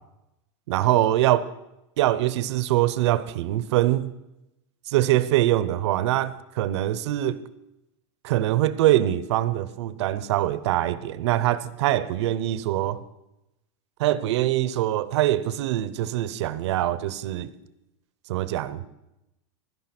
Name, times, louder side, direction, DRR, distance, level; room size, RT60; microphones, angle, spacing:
voice 1, 0.7-1.5 2.0-4.1 4.9-7.4 8.2-13.0 14.0-17.5 18.3-18.8, right 14 dB, 65° right, 0.9 m, -23 dB
16.5 x 12.0 x 6.1 m
supercardioid pair, 170°, 16 cm